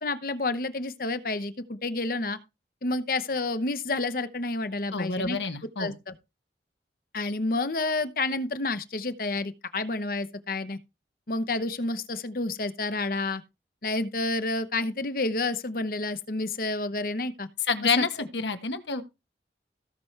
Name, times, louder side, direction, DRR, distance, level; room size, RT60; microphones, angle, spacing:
voice 1, 0.0-2.4 2.8-5.4 5.8-6.1 7.1-10.8 11.3-13.4 13.8-17.5 18.0-18.1, left 2 dB, 55° left, 0.9 m, -29 dB
voice 2, 4.9-5.9 17.7-19.0, left 4 dB, 85° left, 1.5 m, -28 dB
16.5 x 6.0 x 3.3 m
head